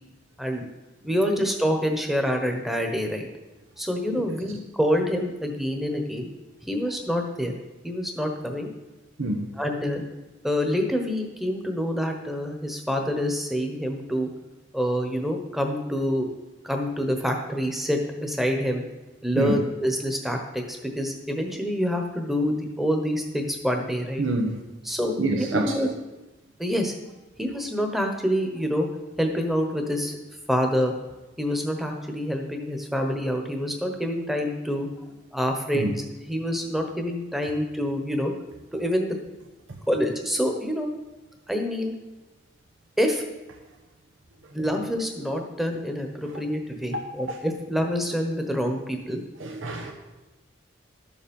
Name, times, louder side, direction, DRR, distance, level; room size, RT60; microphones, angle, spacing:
voice 1, 1.0-3.3 3.8-6.3 6.7-7.5 7.8-8.7 9.6-10.0 10.4-14.3 14.7-16.3 16.6-18.8 19.2-24.2 24.9-25.9 26.6-26.9 27.4-28.9 29.2-30.2 30.5-30.9 31.4-34.9 35.3-38.3 38.7-39.2 39.9-40.9 41.5-41.9 43.0-43.2 44.5-49.2, equal, ahead, 1.1 m, -26 dB
voice 2, 9.2-9.5 19.4-19.5 24.2-24.6 25.2-25.7 35.7-35.9 46.9-47.0 49.4-49.9, right 2 dB, 90° right, 1.1 m, -26 dB
12.0 x 7.2 x 5.4 m
head